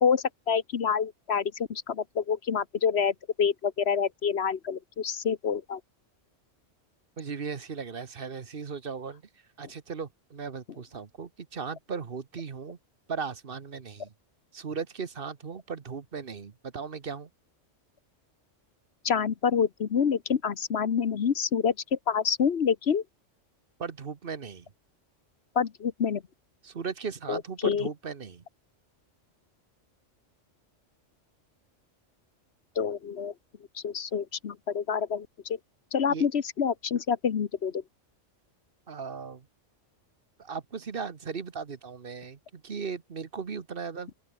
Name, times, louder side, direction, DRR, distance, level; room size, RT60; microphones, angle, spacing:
voice 1, 0.0-5.8 19.0-23.0 25.5-26.2 27.3-27.9 32.8-33.3 33.7-35.6 35.9-37.8, left 7 dB, 60° left, 1.2 m, -27 dB
voice 2, 7.2-9.2 9.6-12.8 13.1-14.1 14.5-17.3 23.8-24.7 26.6-28.4 36.1-36.3 38.9-39.5 40.4-44.1, right 5 dB, 50° right, 1.3 m, -37 dB
open air
omnidirectional pair, 1.3 m